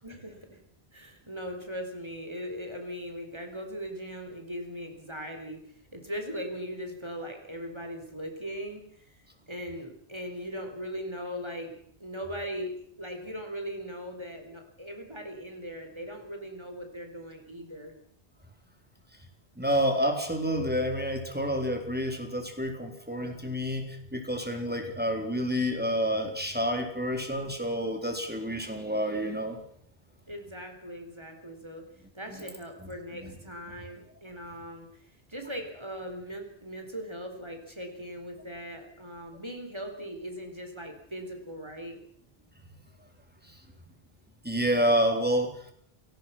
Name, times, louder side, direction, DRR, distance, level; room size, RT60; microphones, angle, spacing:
voice 1, 0.0-0.6 0.9-9.2 9.5-18.0 30.3-31.9 32.1-34.9 35.3-42.0, equal, 25° right, 4 dB, 4.2 m, -39 dB
voice 2, 19.6-29.6 44.4-45.7, equal, 10° right, 4 dB, 4.0 m, -29 dB
28.5 x 19.0 x 5.9 m, 0.63 s
omnidirectional pair, 1.0 m